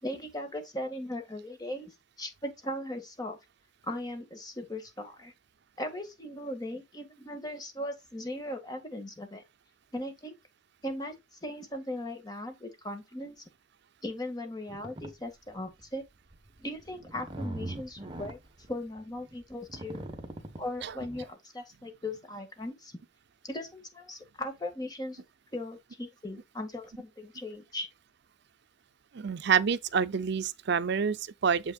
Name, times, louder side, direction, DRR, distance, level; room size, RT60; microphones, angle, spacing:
voice 1, 0.0-1.9 2.2-3.4 3.8-5.3 5.8-9.4 9.9-10.4 10.8-11.2 11.4-13.4 14.0-16.0 16.6-18.4 18.7-20.0 20.6-23.0 23.4-25.2 25.5-27.9, left 1 dB, 20° left, 1.8 m, -38 dB
sound 1, 14.7-15.1 15.6-15.8 16.3-21.3, right 1 dB, 25° right, 1.2 m, -41 dB
voice 2, 29.1-31.7, right 6 dB, 60° right, 0.5 m, -28 dB
7.1 x 6.2 x 2.3 m
head